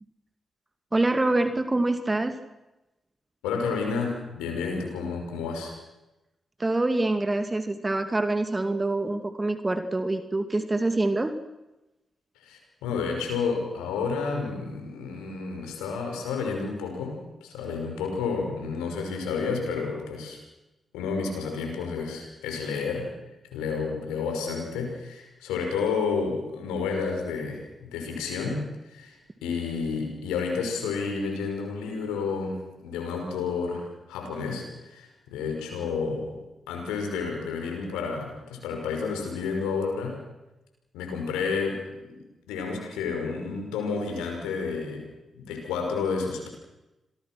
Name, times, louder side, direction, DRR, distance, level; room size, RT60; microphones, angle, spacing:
voice 1, 0.9-2.4 6.6-11.4, right 2 dB, 25° right, 8 dB, 2.5 m, -25 dB
voice 2, 3.4-5.7 12.4-20.4 20.9-23.1 23.5-29.1 29.4-36.3 36.7-40.2 40.9-42.2 42.5-45.1 45.3-46.5, left 5 dB, 85° left, 3 dB, 5.8 m, -30 dB
27.5 x 23.0 x 6.2 m, 0.98 s
hypercardioid pair, 40°, 0 cm